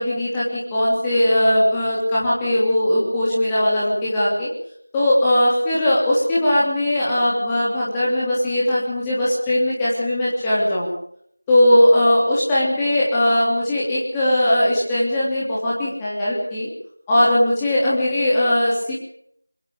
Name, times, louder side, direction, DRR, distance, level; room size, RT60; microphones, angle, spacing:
voice 1, 0.0-4.5 4.9-10.9 11.5-16.7 17.1-18.9, left 1 dB, 5° left, -8 dB, 3.1 m, -19 dB
25.5 x 22.0 x 5.0 m, 0.67 s
figure-of-eight pair, 175°, 0 cm